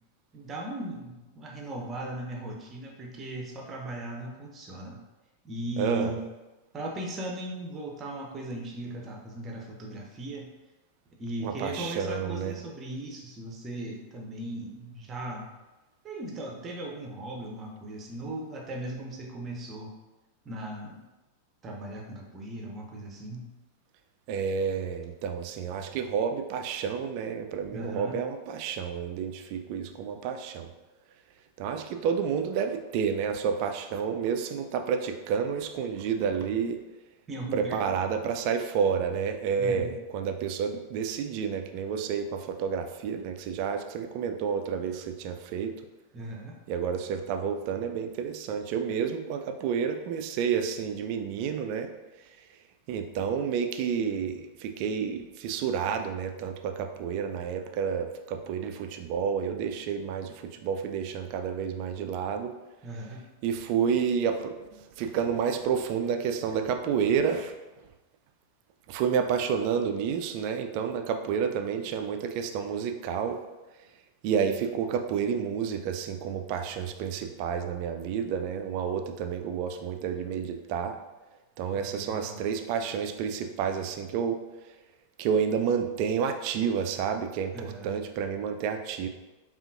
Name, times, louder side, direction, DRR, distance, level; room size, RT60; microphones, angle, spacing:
voice 1, 0.3-5.0 5.4-6.2 6.7-10.5 11.2-15.5 16.0-20.0 20.4-21.0 21.6-23.5 27.7-28.2 37.3-38.1 39.6-39.9 46.1-46.6 62.8-63.3 81.7-82.4 87.5-87.9, right 1 dB, 25° right, 1 dB, 0.7 m, -38 dB
voice 2, 5.8-6.1 11.4-12.5 24.3-30.7 31.6-36.8 37.5-45.7 46.7-51.9 52.9-62.5 63.4-67.5 68.9-73.4 74.2-81.0 81.6-84.4 85.2-89.1, right 7 dB, 45° right, 6 dB, 0.3 m, -30 dB
5.1 x 2.5 x 2.5 m, 1.1 s
figure-of-eight pair, 90°, 0 cm